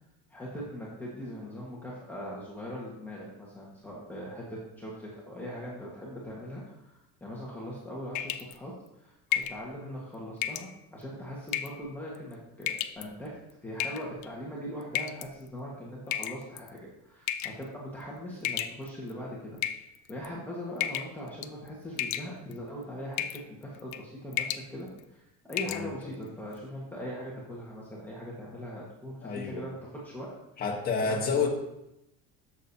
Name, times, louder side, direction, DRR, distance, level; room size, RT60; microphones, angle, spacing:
voice 1, 0.3-19.6 20.1-30.4 31.0-31.5, equal, 5° left, -6 dB, 1.6 m, -41 dB
sound 1, 8.2-8.6 9.3-9.6 10.4-10.7 11.5-11.8 12.6-13.0 13.8-14.3 15.0-15.3 16.1-16.7 17.3-17.6 18.4-19.1 19.6-20.3 20.8-21.2 21.4-21.7 22.0-22.6 23.2-23.4 23.8-24.0 24.3-24.7 25.0-25.1 25.5-25.8, left 12 dB, 55° left, 0.6 m, -32 dB
voice 2, 29.2-29.6 30.6-31.5, left 5 dB, 25° left, -1 dB, 1.5 m, -29 dB
12.5 x 7.0 x 2.8 m, 0.86 s
cardioid pair, 150°, 34 cm